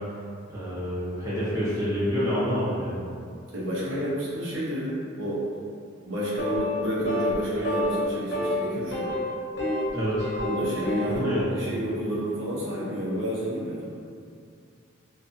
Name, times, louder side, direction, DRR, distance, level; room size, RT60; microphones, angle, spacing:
voice 1, 0.5-3.0 9.9-10.3 11.0-11.6, equal, 15° right, -11 dB, 0.7 m, -27 dB
voice 2, 3.5-5.5 6.0-9.1 10.4-13.9, equal, 70° right, -8 dB, 0.7 m, -30 dB
sound 1, 6.4-6.8 7.1-7.3 7.6-8.0 8.3-8.5 8.9-9.9 10.2-11.2, equal, 55° left, 0.4 m, -28 dB
2.6 x 2.3 x 2.6 m, 2.3 s
head